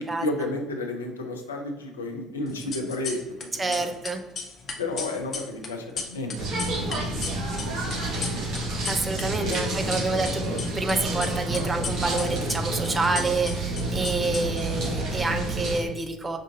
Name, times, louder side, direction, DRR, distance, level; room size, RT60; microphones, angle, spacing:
voice 1, 0.0-3.9 4.8-8.5 9.4-10.3 14.4-14.7, left 2 dB, 80° left, 3 dB, 0.5 m, -33 dB
sound 1, 2.5-3.4 3.7-9.2 9.5-10.9 11.2-14.9, left 4 dB, 40° left, 0.7 m, -35 dB
voice 2, 3.6-4.2 8.9-10.4 10.7-16.4, right 3 dB, 20° right, 5 dB, 0.5 m, -28 dB
sound 2, 6.3-15.8, right 2 dB, 50° right, 1.1 m, -29 dB
5.3 x 2.4 x 2.6 m, 1.0 s
figure-of-eight pair, 55°, 0 cm